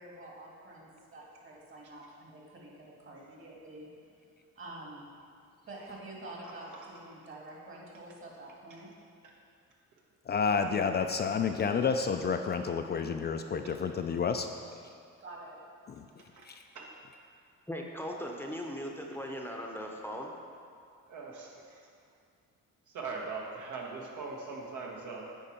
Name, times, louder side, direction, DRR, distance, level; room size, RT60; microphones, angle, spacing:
voice 1, 0.0-3.9 4.6-5.1 5.7-8.9 15.2-15.6, right 2 dB, 45° right, -2 dB, 1.8 m, -47 dB
voice 2, 6.4-6.9 8.7-8.8 16.3-16.5 16.7-16.9 21.1-21.8 22.9-25.2, right 4 dB, 75° right, -1 dB, 1.3 m, -41 dB
voice 3, 10.3-14.5 15.9-16.0 16.5-16.6, left 5 dB, 35° left, 6 dB, 0.4 m, -30 dB
voice 4, 17.7-20.3, equal, 5° left, 0 dB, 0.7 m, -38 dB
9.0 x 4.6 x 4.3 m, 2.3 s
cardioid pair, 90°, 30 cm